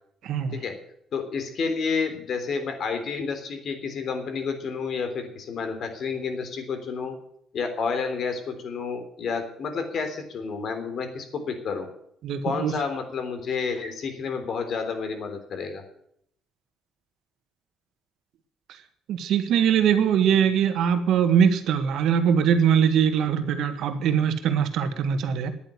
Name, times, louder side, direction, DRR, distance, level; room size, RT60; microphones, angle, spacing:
voice 1, 0.2-0.6 12.2-12.7 19.1-25.5, right 8 dB, 75° right, 9 dB, 1.7 m, -22 dB
voice 2, 1.1-7.2 7.5-11.9 12.4-15.8, left 5 dB, 60° left, 6 dB, 3.5 m, -30 dB
10.5 x 9.2 x 9.8 m, 0.69 s
cardioid pair, 85°, 0 cm